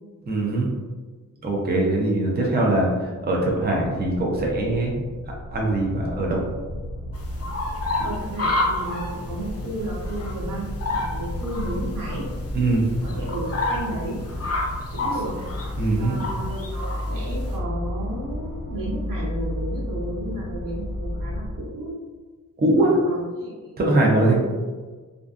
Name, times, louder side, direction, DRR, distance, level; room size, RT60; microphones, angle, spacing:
voice 1, 0.3-0.7 1.4-5.0 5.5-6.4 12.5-12.9 15.8-16.2 22.6-23.0 23.8-24.4, right 2 dB, 30° right, -2 dB, 0.5 m, -22 dB
sound 1, 3.7-21.6, left 1 dB, 35° left, 1.2 m, -32 dB
sound 2, 7.1-17.6, left 2 dB, 50° left, 0.5 m, -30 dB
voice 2, 8.0-12.3 13.0-14.2 14.9-15.4 15.9-22.0 22.8-23.7 24.3-24.4, right 1 dB, 80° right, -3 dB, 0.7 m, -33 dB
2.5 x 2.2 x 2.4 m, 1.4 s
wide cardioid pair, 120°, 32 cm